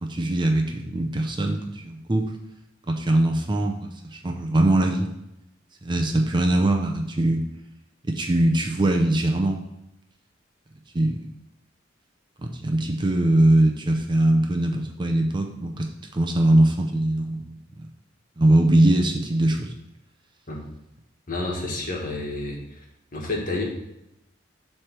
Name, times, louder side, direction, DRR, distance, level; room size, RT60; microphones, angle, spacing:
voice 1, 0.0-2.3 2.9-5.1 5.8-7.4 8.1-9.6 10.9-11.2 12.4-17.6 18.4-19.7, right 1 dB, 25° right, 2 dB, 0.6 m, -21 dB
voice 2, 21.3-22.8 23.1-23.6, left 2 dB, 45° left, -1 dB, 1.6 m, -29 dB
7.5 x 3.3 x 6.1 m, 0.88 s
head